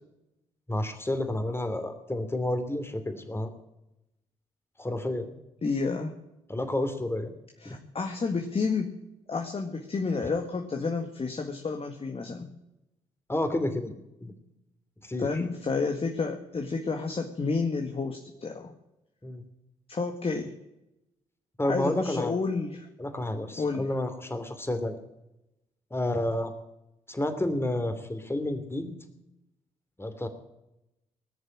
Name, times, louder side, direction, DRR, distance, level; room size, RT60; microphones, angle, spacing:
voice 1, 0.7-3.5 4.8-5.3 6.5-7.3 7.6-7.8 13.3-13.9 14.2-14.3 15.1-15.4 19.2-19.4 21.6-22.3 23.0-25.0 25.9-26.5 27.1-28.9 30.0-30.3, left 1 dB, 15° left, 8 dB, 2.9 m, -30 dB
voice 2, 5.6-6.1 7.6-8.9 9.3-12.5 15.2-18.7 19.9-20.6 21.6-22.9 23.6-24.0, left 4 dB, 40° left, 4 dB, 1.9 m, -30 dB
19.0 x 6.9 x 9.8 m, 0.90 s
hypercardioid pair, 45°, 15 cm